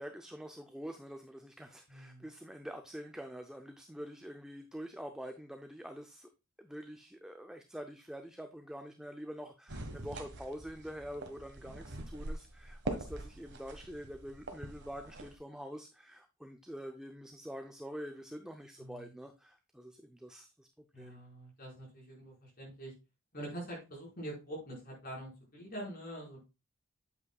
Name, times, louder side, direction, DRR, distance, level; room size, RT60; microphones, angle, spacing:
voice 1, 0.0-6.3 6.6-20.7 21.0-21.2, equal, 5° right, 6 dB, 0.5 m, -46 dB
voice 2, 1.9-2.3 18.8-19.1 20.9-22.9 23.3-26.4, right 1 dB, 45° left, -3 dB, 4.8 m, -45 dB
sound 1, 9.7-15.3, right 2 dB, 55° right, 1.4 m, -43 dB
8.3 x 8.2 x 2.3 m, 0.27 s
head